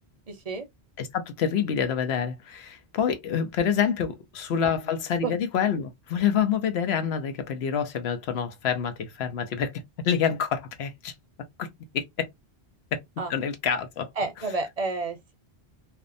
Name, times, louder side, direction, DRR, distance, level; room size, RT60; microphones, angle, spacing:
voice 1, 0.3-0.6 5.2-5.3 13.2-13.3 14.2-15.3, right 3 dB, 45° right, 0.6 m, -30 dB
voice 2, 1.0-11.1 11.6-11.7 11.9-12.3 12.9-13.0 13.3-14.1, left 7 dB, 80° left, 0.9 m, -27 dB
2.7 x 2.1 x 2.4 m
omnidirectional pair, 1.0 m